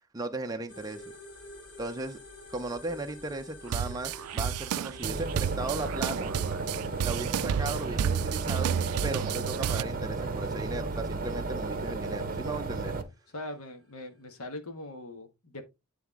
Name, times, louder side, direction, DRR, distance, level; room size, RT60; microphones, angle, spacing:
voice 1, 0.1-1.1 1.8-2.2 2.5-6.3 7.0-8.7 9.0-13.0, right 2 dB, 15° right, 0.5 m, -36 dB
sound 1, 0.7-14.4, left 2 dB, 40° left, 2.6 m, -51 dB
sound 2, 3.7-9.8, right 9 dB, 85° right, 0.3 m, -31 dB
sound 3, 5.0-13.0, right 3 dB, 40° right, 0.9 m, -34 dB
voice 2, 13.3-15.6, left 1 dB, 85° left, 1.4 m, -41 dB
9.1 x 3.4 x 3.5 m
head